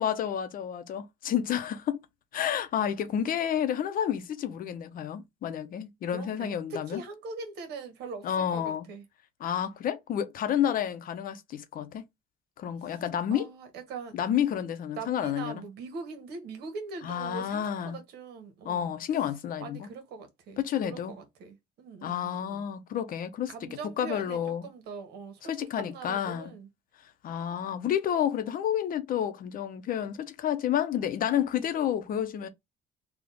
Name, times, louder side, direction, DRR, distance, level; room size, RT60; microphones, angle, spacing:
voice 1, 0.0-2.0 2.3-7.0 8.2-8.9 9.4-12.0 12.6-13.5 14.1-15.6 17.0-18.0 18.6-19.9 20.6-21.2 22.0-23.5 24.0-24.7 25.4-26.5 27.2-32.5, left 9 dB, 55° left, 0.8 m, -30 dB
voice 2, 6.1-9.0 12.9-13.0 13.3-14.2 15.0-18.9 19.6-22.7 23.5-26.7, right 4 dB, 75° right, 1.3 m, -42 dB
3.5 x 2.4 x 3.8 m
cardioid pair, 110°, 17 cm